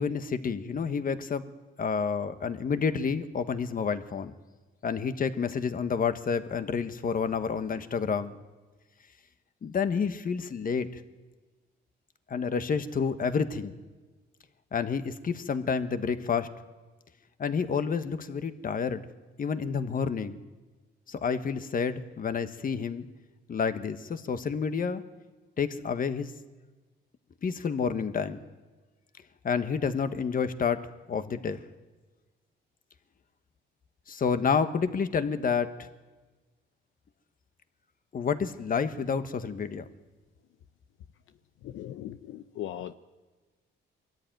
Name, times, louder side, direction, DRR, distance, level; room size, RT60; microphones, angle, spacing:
voice 1, 0.0-1.4 1.8-4.4 4.8-8.3 9.6-10.9 12.3-13.7 14.7-16.5 17.4-19.1 19.4-20.4 21.1-23.1 23.5-25.0 25.6-26.3 27.4-28.4 29.4-31.6 34.1-35.9 38.1-39.8, left 6 dB, 45° left, 10 dB, 1.4 m, -29 dB
voice 2, 41.6-43.0, left 11 dB, 80° left, 11 dB, 0.7 m, -38 dB
22.5 x 14.0 x 9.3 m, 1.3 s
cardioid pair, 90°, 20 cm